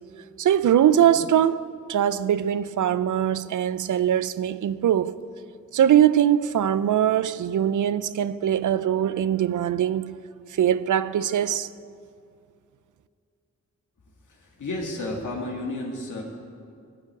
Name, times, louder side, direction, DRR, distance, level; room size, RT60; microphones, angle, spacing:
voice 1, 0.4-1.6 1.9-5.2 5.7-10.2 10.6-11.7, right 10 dB, 90° right, 0.5 m, -21 dB
voice 2, 14.3-16.2, left 2 dB, 90° left, 1.9 m, -32 dB
15.0 x 5.7 x 9.1 m
cardioid pair, 50°, 30 cm